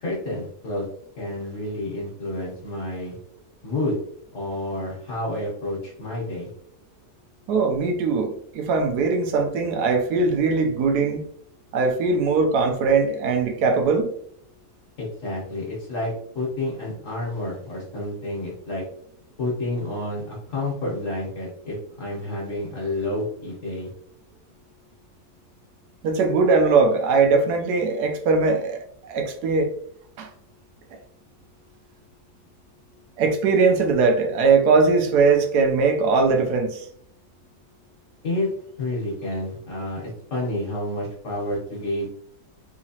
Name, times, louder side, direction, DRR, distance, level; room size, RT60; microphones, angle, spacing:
voice 1, 0.0-0.8 1.2-3.1 3.6-4.0 4.3-6.5 15.0-18.8 19.4-23.9 38.2-38.5 38.8-42.1, left 1 dB, 55° left, 1.3 m, -29 dB
voice 2, 7.5-11.2 11.7-14.1 26.0-28.8 29.1-29.7 30.2-30.3 33.2-36.9, right 4 dB, 90° right, 1.2 m, -20 dB
3.7 x 2.9 x 2.8 m
omnidirectional pair, 1.7 m